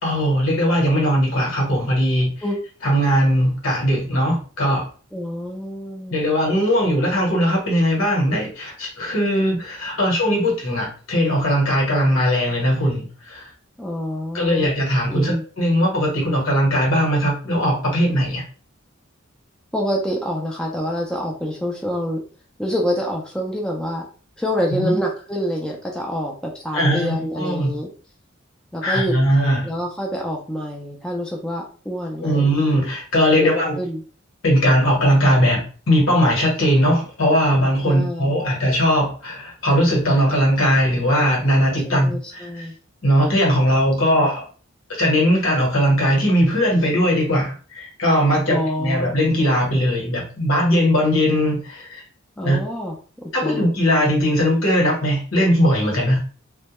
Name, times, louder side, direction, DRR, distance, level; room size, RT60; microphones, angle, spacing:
voice 1, 0.0-2.3 2.8-4.8 6.1-13.5 14.3-18.4 24.7-25.0 26.7-27.7 28.8-29.7 32.2-33.8 34.4-42.7 43.0-44.4 44.9-52.0 52.4-52.6 53.3-56.2, equal, 75° left, -2 dB, 1.1 m, -19 dB
voice 2, 5.1-6.2 13.8-14.7 15.1-15.4 19.7-22.2 22.6-24.0 24.4-27.9 28.7-29.1 29.6-32.9 33.3-34.0 37.8-38.3 41.9-42.7 44.1-44.3 48.5-49.2 52.4-53.0 53.4-53.7, equal, 5° left, -1 dB, 0.3 m, -27 dB
2.1 x 2.1 x 2.8 m, 0.39 s
head